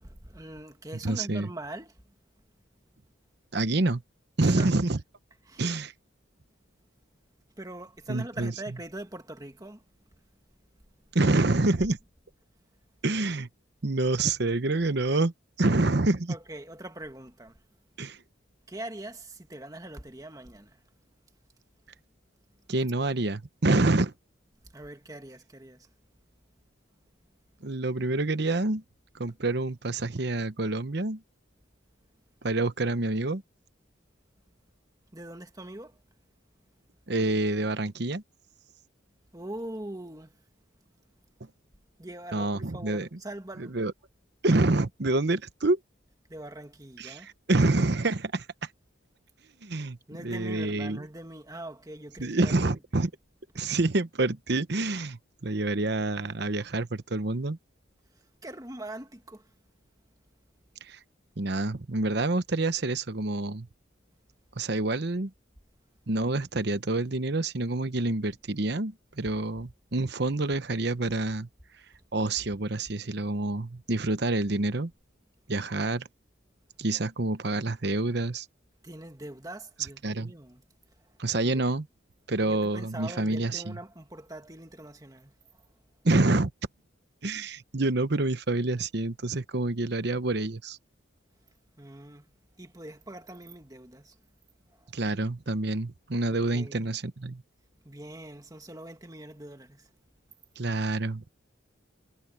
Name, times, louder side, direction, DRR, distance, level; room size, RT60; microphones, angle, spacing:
voice 1, 0.0-2.0 4.4-4.7 5.4-5.7 7.6-9.8 16.3-17.6 18.7-20.8 24.7-25.9 35.1-36.0 39.3-40.3 42.0-43.8 46.3-47.3 50.1-52.8 58.1-59.5 78.8-80.6 81.4-81.6 82.4-85.6 91.8-92.3 92.6-94.2 94.7-94.9 96.3-96.9 97.8-99.9, right 1 dB, 20° right, 1.9 m, -42 dB
voice 2, 1.0-1.5 3.5-4.0 4.4-5.0 5.6-5.9 8.1-8.5 11.1-12.0 13.0-13.5 13.8-15.3 15.6-16.3 18.0-18.2 22.7-24.1 27.6-28.8 29.1-31.2 32.4-33.4 37.1-38.2 42.3-43.1 43.6-43.9 44.4-45.8 47.0-48.5 49.6-50.0 50.2-51.0 52.2-53.1 53.5-57.6 60.8-61.0 61.4-63.7 64.6-65.3 66.1-71.5 72.1-74.9 75.5-76.1 76.8-78.5 80.0-80.3 81.2-81.8 82.3-83.8 86.0-86.5 87.2-90.8 94.9-97.4 100.6-101.2, right 2 dB, 55° right, 1.0 m, -27 dB
head